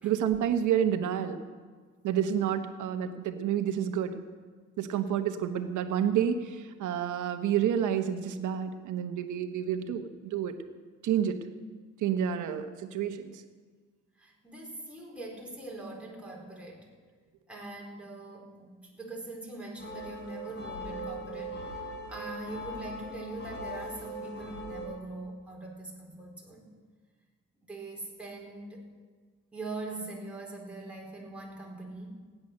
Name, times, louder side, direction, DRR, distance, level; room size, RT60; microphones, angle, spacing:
voice 1, 0.0-1.4 2.0-4.2 4.8-10.5 11.0-11.4 12.0-13.3, right 9 dB, 80° right, 8 dB, 1.2 m, -29 dB
voice 2, 14.2-16.9 17.5-26.7 27.6-28.9 29.5-32.1, right 2 dB, 5° right, -2 dB, 4.3 m, -42 dB
sound 1, 19.8-24.9, right 1 dB, 35° left, 5.6 m, -40 dB
16.0 x 10.5 x 6.4 m, 1.5 s
cardioid pair, 90°, 30 cm